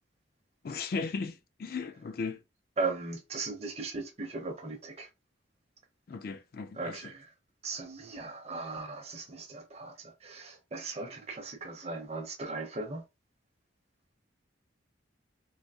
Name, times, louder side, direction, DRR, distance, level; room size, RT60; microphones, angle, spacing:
voice 1, 0.6-2.4 6.1-7.0, left 4 dB, 50° left, 0.4 m, -36 dB
voice 2, 2.8-5.1 6.8-7.3 7.6-13.0, right 3 dB, 30° right, 0.6 m, -38 dB
3.3 x 2.6 x 2.7 m
head